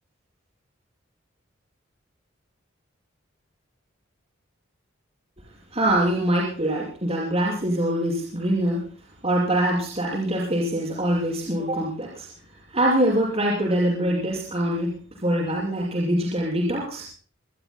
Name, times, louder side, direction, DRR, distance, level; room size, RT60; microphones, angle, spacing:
voice 1, 5.7-8.9 9.2-12.3 12.7-17.1, right 1 dB, 30° right, -4 dB, 6.4 m, -24 dB
26.5 x 20.5 x 2.3 m, 0.41 s
head